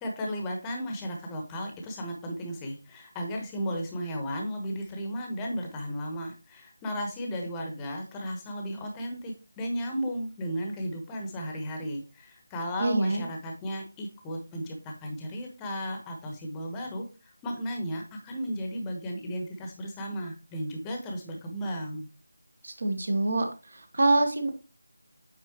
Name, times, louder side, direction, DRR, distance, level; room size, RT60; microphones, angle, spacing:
voice 1, 0.0-22.1, equal, 10° left, 2 dB, 1.1 m, -35 dB
voice 2, 12.8-13.2 22.6-23.5 23.7-24.5, right 2 dB, 55° right, 6 dB, 1.4 m, -25 dB
8.8 x 4.0 x 3.0 m, 0.31 s
figure-of-eight pair, 160°, 0 cm